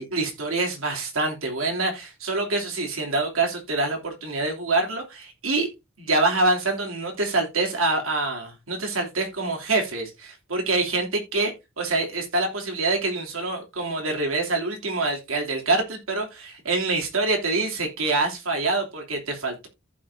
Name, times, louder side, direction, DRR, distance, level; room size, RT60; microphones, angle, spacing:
voice 1, 0.0-5.7 6.0-11.5 11.8-19.7, right 3 dB, 80° right, 3.0 m, -25 dB
14.5 x 5.5 x 2.7 m
head